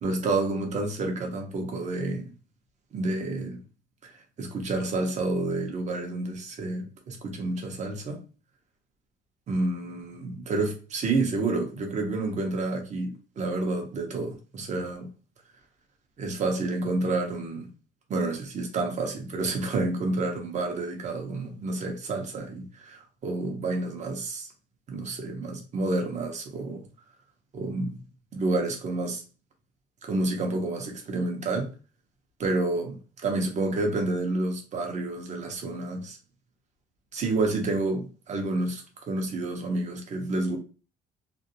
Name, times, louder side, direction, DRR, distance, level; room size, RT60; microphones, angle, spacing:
voice 1, 0.0-2.3 2.9-3.6 4.0-8.2 9.5-15.1 16.2-17.7 18.1-24.5 24.9-26.8 27.5-28.0 28.3-29.2 30.0-31.7 32.4-33.0 33.2-36.2 37.1-40.6, right 2 dB, 45° right, 0.8 m, -29 dB
2.5 x 2.0 x 2.8 m
cardioid pair, 110°, 17 cm